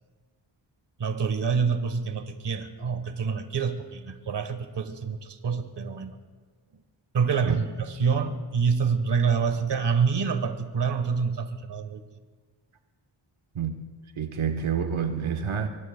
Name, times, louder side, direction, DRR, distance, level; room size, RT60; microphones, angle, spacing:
voice 1, 1.0-6.2 7.1-12.0, right 6 dB, 60° right, 8 dB, 1.2 m, -27 dB
voice 2, 14.2-15.7, right 7 dB, 90° right, 5 dB, 1.1 m, -28 dB
25.0 x 24.0 x 2.2 m, 1.4 s
wide cardioid pair, 110°, 47 cm